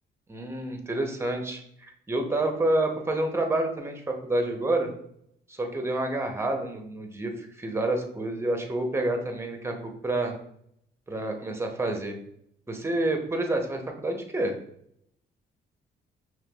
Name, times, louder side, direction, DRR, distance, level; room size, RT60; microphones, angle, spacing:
voice 1, 0.3-4.9 5.5-10.4 11.1-12.2 12.7-14.6, right 2 dB, 15° right, 3 dB, 0.7 m, -28 dB
5.7 x 3.0 x 2.3 m, 0.72 s
cardioid pair, 90°, 20 cm